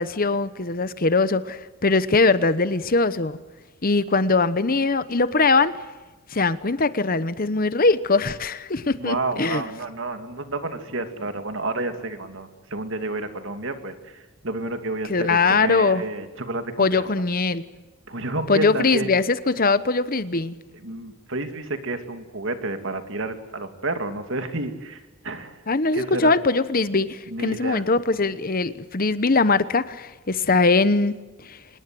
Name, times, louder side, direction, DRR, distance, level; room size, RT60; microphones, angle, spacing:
voice 1, 0.0-3.4 3.8-5.7 6.3-9.6 15.1-16.0 16.8-17.6 18.5-20.6 25.7-31.1 31.4-31.6, left 3 dB, 40° left, 14 dB, 1.0 m, -21 dB
voice 2, 8.9-14.1 14.4-16.9 18.1-19.1 20.8-25.0 25.2-25.6 25.9-26.3 27.3-27.8, right 2 dB, 60° right, 7 dB, 2.6 m, -30 dB
26.0 x 20.5 x 7.8 m, 1.2 s
head